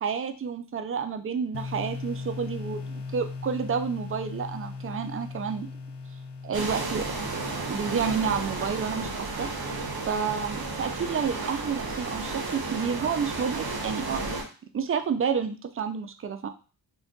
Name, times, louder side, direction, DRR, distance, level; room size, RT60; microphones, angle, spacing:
voice 1, 0.0-5.7 6.4-7.1 7.7-9.5 10.1-14.2 14.7-16.5, right 6 dB, 30° right, 8 dB, 0.4 m, -30 dB
sound 1, 1.5-8.4, left 4 dB, 65° left, 0.6 m, -38 dB
sound 2, 6.5-14.4, right 3 dB, 55° right, 0.8 m, -33 dB
2.5 x 2.2 x 3.6 m, 0.36 s
cardioid pair, 45°, 44 cm